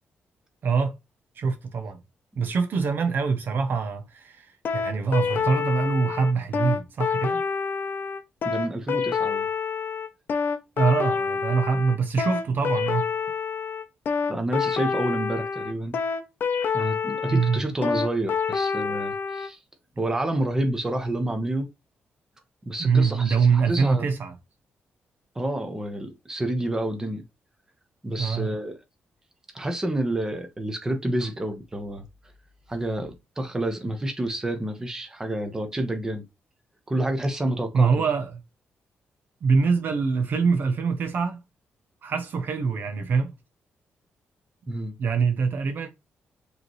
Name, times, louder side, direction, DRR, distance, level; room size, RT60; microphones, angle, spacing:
voice 1, 0.6-1.0 1.4-2.0 2.4-7.4 10.8-13.1 17.3-17.6 22.8-24.3 28.2-28.5 37.7-38.4 39.4-41.4 42.0-43.3 45.0-45.9, right 5 dB, 55° right, 0.6 m, -24 dB
sound 1, 4.6-19.5, left 5 dB, 55° left, 0.6 m, -27 dB
voice 2, 8.4-9.5 14.3-16.0 16.7-19.6 20.0-21.7 22.7-24.1 25.4-27.2 28.0-28.8 29.5-32.0 32.7-36.2 36.9-37.9 44.7-44.9, right 1 dB, 15° right, 0.9 m, -29 dB
4.8 x 3.2 x 3.0 m
wide cardioid pair, 150°, 4 cm